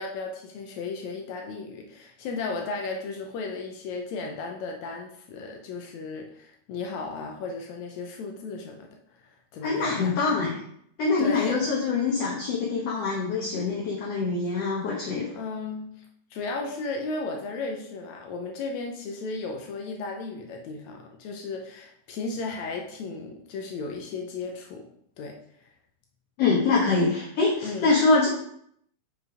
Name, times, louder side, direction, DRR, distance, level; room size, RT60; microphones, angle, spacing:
voice 1, 0.0-8.9 9.2-10.1 11.2-11.7 15.4-16.0 16.3-24.9 25.2-25.4 27.6-27.9, left 3 dB, 75° left, 2 dB, 1.7 m, -35 dB
voice 2, 9.6-10.6 11.0-15.3 26.4-28.3, left 4 dB, 55° left, -4 dB, 2.0 m, -24 dB
6.7 x 5.2 x 4.9 m, 0.70 s
omnidirectional pair, 4.2 m